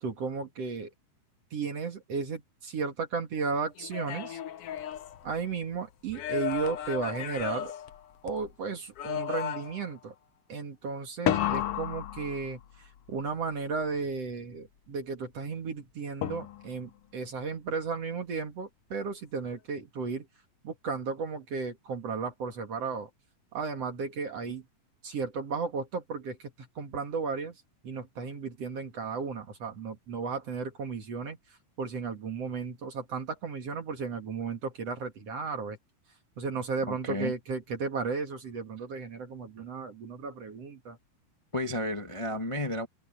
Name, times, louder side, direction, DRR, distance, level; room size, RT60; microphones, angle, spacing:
voice 1, 0.0-0.9 1.5-4.4 5.2-7.7 8.2-10.1 10.5-20.3 20.6-23.1 23.5-24.6 25.0-35.8 36.4-41.0, right 5 dB, 50° right, 2.9 m, -34 dB
sound 1, 3.8-5.7 6.1-8.5 9.0-9.9 11.3-12.9 16.2-16.9, left 11 dB, 70° left, 1.4 m, -33 dB
voice 2, 36.9-37.3 41.5-42.9, left 1 dB, 40° left, 0.4 m, -32 dB
omnidirectional pair, 3.8 m